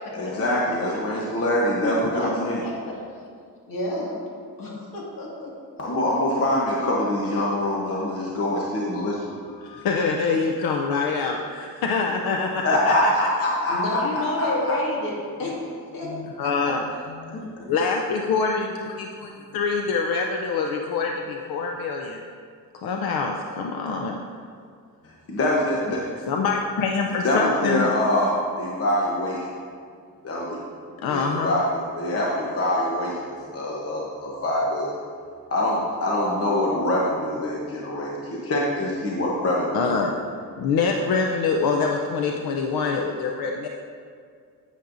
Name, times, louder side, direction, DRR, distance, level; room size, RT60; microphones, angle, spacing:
voice 1, 0.1-2.6 5.8-9.2 12.6-14.7 25.3-26.0 27.2-29.5 30.2-30.6 31.0-35.0 35.5-39.9, left 1 dB, 40° left, -4 dB, 1.0 m, -24 dB
voice 2, 1.8-2.3 2.6-3.0 3.7-4.1 4.6-5.5 13.7-15.6 15.9-16.1 16.4-16.7 17.3-17.7, left 2 dB, 70° left, -4 dB, 2.1 m, -30 dB
voice 3, 9.6-13.1 16.1-16.8 17.2-17.4 17.7-18.9 19.5-22.2 22.7-24.2 26.3-27.9 31.0-31.6 39.7-40.1 40.6-43.7, left 4 dB, 85° left, 2 dB, 0.6 m, -25 dB
10.5 x 8.2 x 2.6 m, 2.1 s
wide cardioid pair, 135°, 35 cm